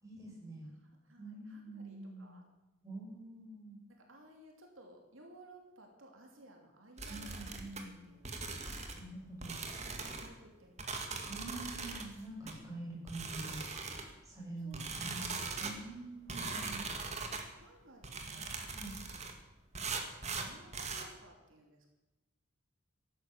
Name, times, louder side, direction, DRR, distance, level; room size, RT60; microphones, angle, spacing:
voice 1, 0.0-0.7 1.2-2.4 2.8-3.8 7.1-8.1 8.9-9.6 11.3-13.6 14.2-15.3 15.6-16.8 18.7-18.9, right 2 dB, 15° right, -3 dB, 6.6 m, -46 dB
voice 2, 0.7-2.4 4.0-8.8 9.8-11.6 14.6-15.6 15.9-16.5 17.5-18.7 19.8-21.9, right 1 dB, 80° right, 2 dB, 2.9 m, -59 dB
sound 1, 7.0-7.8 8.2-9.0 9.4-10.3 10.8-12.1 12.5-12.6 13.1-14.1 14.7-15.8 16.3-17.5 18.0-19.3 19.7-21.1, right 4 dB, 35° right, 2.0 m, -40 dB
14.5 x 11.5 x 7.3 m, 1.1 s
head